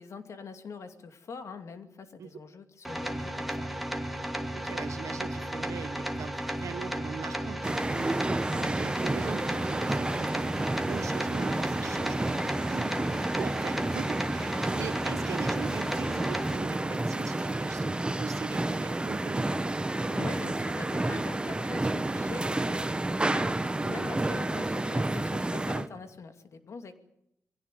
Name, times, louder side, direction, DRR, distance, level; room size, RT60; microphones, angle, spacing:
voice 1, 0.0-3.7 20.1-27.0, left 5 dB, 65° left, 8 dB, 2.5 m, -44 dB
sound 1, 2.8-16.6, right 1 dB, ahead, 2.4 m, -34 dB
voice 2, 4.5-10.5 10.8-12.2 12.7-13.0 13.3-19.5 24.1-24.4, right 7 dB, 80° right, 14 dB, 1.2 m, -41 dB
sound 2, 7.6-25.9, right 2 dB, 20° right, 1.2 m, -30 dB
22.0 x 16.5 x 9.1 m, 0.77 s
cardioid pair, 70°, 5 cm